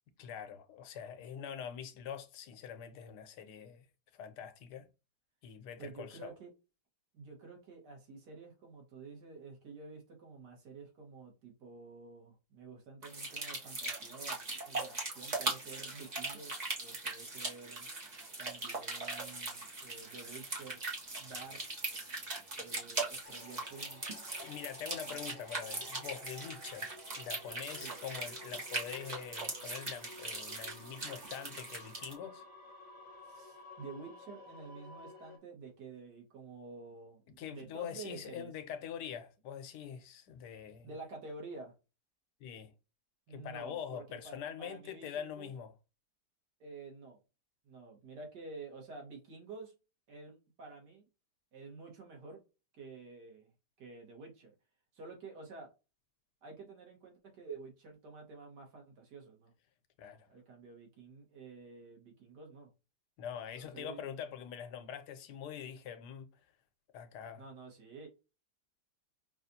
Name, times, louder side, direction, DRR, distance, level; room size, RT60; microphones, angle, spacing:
voice 1, 0.2-3.9 4.1-4.9 5.4-6.3 24.4-26.9 27.2-32.4 37.4-40.9 42.4-42.7 43.3-45.7 60.0-60.3 63.2-66.4 66.9-67.4, left 8 dB, 85° left, 1.3 m, -44 dB
voice 2, 5.8-6.5 7.1-17.9 18.4-20.8 21.2-21.6 22.6-24.1 25.1-25.3 27.8-28.0 33.2-38.5 40.8-41.7 43.3-45.5 46.6-47.2 47.6-49.7 50.1-51.0 51.5-52.4 52.7-53.5 53.8-54.5 54.9-55.7 56.4-59.5 60.3-62.7 63.5-64.0 67.4-68.1, right 4 dB, 75° right, 2.0 m, -50 dB
sound 1, 13.0-32.1, right 2 dB, 30° right, 0.9 m, -40 dB
sound 2, 23.2-35.4, left 1 dB, 40° left, 1.3 m, -53 dB
5.6 x 2.4 x 2.7 m
omnidirectional pair, 1.8 m